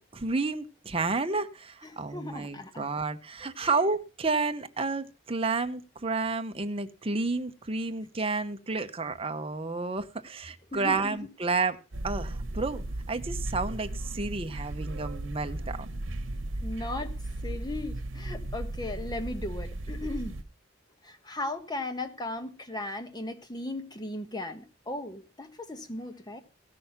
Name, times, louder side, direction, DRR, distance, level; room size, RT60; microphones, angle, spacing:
voice 1, 0.0-11.8 12.0-15.9, right 3 dB, 30° right, 8 dB, 0.9 m, -31 dB
voice 2, 1.8-2.9 3.4-3.8 10.7-11.2 16.6-20.4 21.0-26.4, left 2 dB, 20° left, 8 dB, 1.3 m, -37 dB
sound 1, 11.9-20.4, right 1 dB, 85° right, 1.0 m, -36 dB
16.0 x 6.3 x 5.8 m, 0.34 s
head